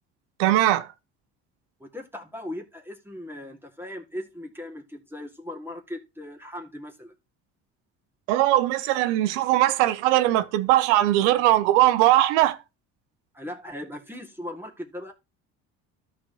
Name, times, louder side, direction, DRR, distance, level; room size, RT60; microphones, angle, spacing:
voice 1, 0.4-0.9 8.3-12.6, right 14 dB, 85° right, 0.9 m, -20 dB
voice 2, 1.8-7.1 13.3-15.1, left 1 dB, 5° right, 2.4 m, -38 dB
13.5 x 5.0 x 3.1 m
supercardioid pair, 70°, 35 cm